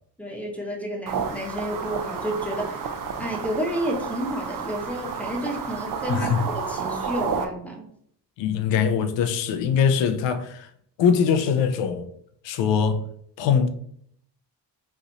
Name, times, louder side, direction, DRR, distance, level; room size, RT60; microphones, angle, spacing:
voice 1, 0.2-7.9, equal, 5° left, 0.9 m, -31 dB
sound 1, 1.1-7.5, right 6 dB, 50° right, 0.6 m, -31 dB
voice 2, 6.1-6.4 7.0-7.1 8.4-10.7 11.0-12.1 12.4-13.0 13.4-13.7, left 7 dB, 90° left, 0.6 m, -22 dB
3.1 x 2.5 x 4.0 m
cardioid pair, 85°, 42 cm